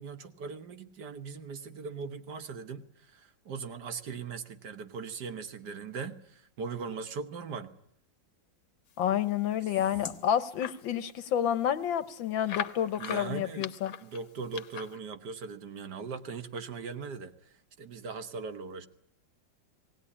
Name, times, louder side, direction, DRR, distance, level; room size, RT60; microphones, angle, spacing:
voice 1, 0.0-7.7 9.6-9.8 13.0-13.7 14.0-18.9, right 5 dB, 65° right, 9 dB, 1.7 m, -40 dB
voice 2, 9.0-13.9, left 10 dB, 90° left, 13 dB, 1.8 m, -29 dB
sound 1, 9.3-10.8 11.3-11.4 11.6-11.7 12.5-15.0, left 8 dB, 60° left, 1.5 m, -40 dB
18.5 x 18.5 x 9.9 m, 0.69 s
omnidirectional pair, 2.0 m